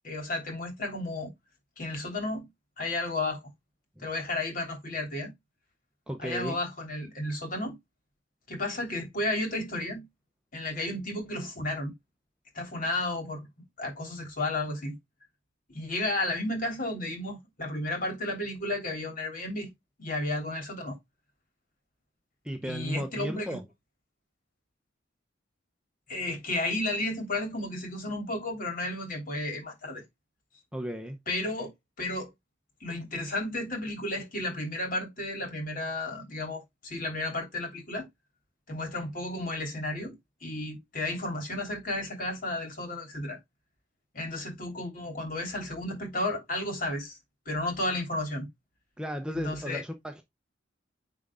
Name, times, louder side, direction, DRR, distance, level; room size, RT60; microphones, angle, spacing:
voice 1, 0.0-1.3 1.8-2.5 2.8-3.4 4.0-5.3 6.2-7.7 8.5-10.0 10.5-11.9 12.5-13.5 13.8-14.9 15.7-19.7 20.0-21.0 22.6-23.6 26.1-30.0 31.3-31.7 32.0-32.3 32.8-38.1 38.7-40.1 40.4-43.4 44.1-47.2 47.4-48.5 49.3-49.8, left 2 dB, 45° left, 3.1 m, -33 dB
voice 2, 6.1-6.5 22.4-23.6 30.7-31.2 49.0-50.2, equal, 5° right, 0.7 m, -34 dB
9.5 x 3.7 x 3.6 m
head